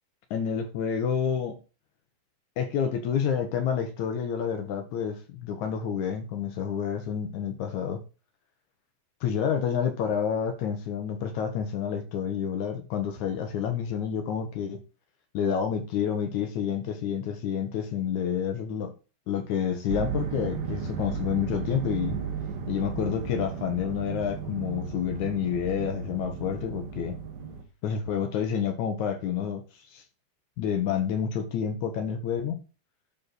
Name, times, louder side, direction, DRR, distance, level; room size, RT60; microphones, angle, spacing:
voice 1, 0.3-1.6 2.6-8.0 9.2-14.8 15.3-18.9 19.3-22.2 22.7-27.2 27.8-29.6 29.9-30.0 30.6-32.6, left 8 dB, 70° left, 6 dB, 2.2 m, -29 dB
sound 1, 19.9-27.6, right 6 dB, 80° right, 2.8 m, -34 dB
12.0 x 4.4 x 4.0 m, 0.33 s
omnidirectional pair, 3.8 m